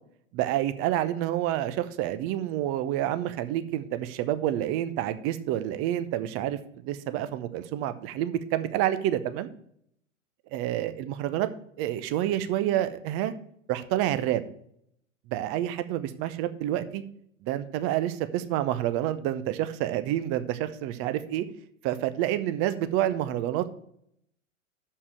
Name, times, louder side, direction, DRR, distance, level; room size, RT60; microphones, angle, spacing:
voice 1, 0.3-9.5 10.5-11.5 11.8-13.3 13.7-14.4 15.3-17.0 17.4-21.5 21.8-23.7, right 12 dB, 35° right, 12 dB, 0.8 m, -28 dB
6.7 x 5.7 x 7.0 m, 0.68 s
hypercardioid pair, 105°, 39 cm